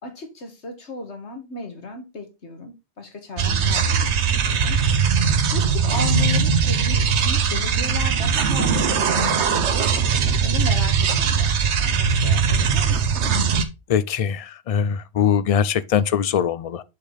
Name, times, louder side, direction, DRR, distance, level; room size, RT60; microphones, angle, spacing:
voice 1, 0.0-4.8 5.0-10.0 10.4-13.3, left 2 dB, 85° left, 1.9 m, -35 dB
sound 1, 3.4-13.6, right 6 dB, 90° right, 1.1 m, -20 dB
voice 2, 13.9-16.8, left 8 dB, 55° left, 0.4 m, -22 dB
6.8 x 5.0 x 3.9 m
omnidirectional pair, 1.1 m